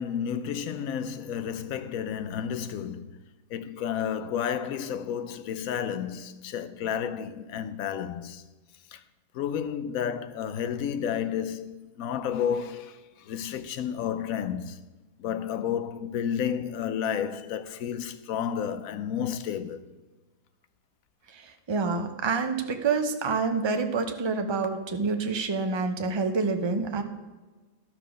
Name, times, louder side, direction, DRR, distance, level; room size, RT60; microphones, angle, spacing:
voice 1, 0.0-3.2 3.5-8.4 8.9-9.0 9.3-14.8 15.2-19.8, left 8 dB, 90° left, 1.1 m, -31 dB
voice 2, 21.3-27.0, right 4 dB, 30° right, 0.5 m, -27 dB
12.0 x 4.7 x 6.2 m
omnidirectional pair, 1.4 m